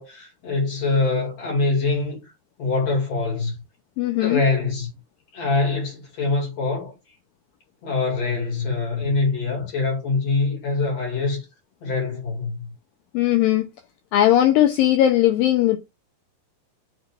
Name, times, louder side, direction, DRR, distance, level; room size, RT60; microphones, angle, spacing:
voice 1, 0.0-2.2 2.6-3.6 4.2-4.9 5.3-6.9 7.8-11.5 11.8-12.7, left 3 dB, 45° left, 3.0 m, -24 dB
voice 2, 4.0-4.4 13.1-13.7 14.1-15.8, left 12 dB, 80° left, 2.2 m, -18 dB
7.0 x 3.3 x 4.2 m
omnidirectional pair, 4.5 m